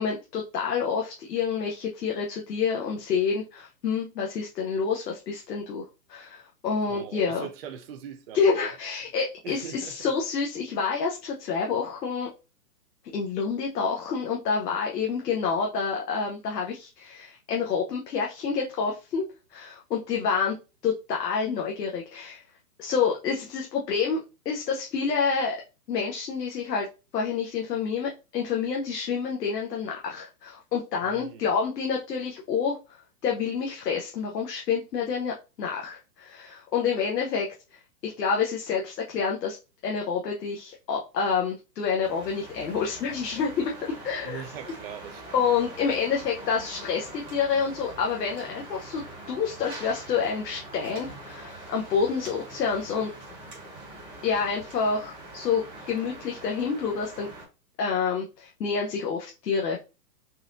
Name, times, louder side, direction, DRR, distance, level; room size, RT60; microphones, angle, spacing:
voice 1, 0.0-7.5 8.3-12.3 13.1-19.3 19.5-20.6 20.8-22.4 22.8-25.6 25.9-26.9 27.1-32.8 33.2-39.6 39.8-44.4 45.3-53.1 54.2-57.3 57.8-59.8, left 6 dB, 80° left, 0.9 m, -28 dB
voice 2, 6.9-8.7 9.4-10.1 31.0-31.5 44.2-45.4, right 8 dB, 40° right, 0.4 m, -41 dB
sound 1, 42.0-57.4, right 2 dB, 10° right, 0.9 m, -43 dB
4.1 x 2.6 x 2.5 m
hypercardioid pair, 140°, 49 cm